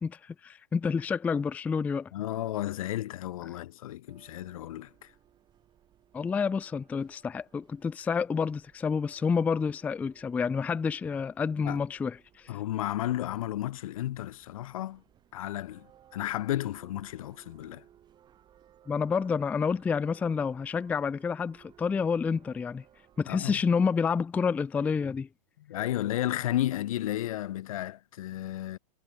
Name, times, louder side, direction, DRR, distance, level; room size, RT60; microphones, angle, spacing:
voice 1, 0.0-2.1 6.1-12.2 18.9-22.8 23.2-25.3, left 5 dB, 10° left, 0.4 m, -29 dB
voice 2, 2.1-5.1 11.6-11.8 12.5-15.0 15.3-15.9 16.1-17.8 23.3-23.6 25.7-28.8, left 14 dB, 70° left, 1.0 m, -33 dB
sound 1, 4.1-23.6, right 10 dB, 25° right, 4.7 m, -61 dB
hypercardioid pair, 135°, 19 cm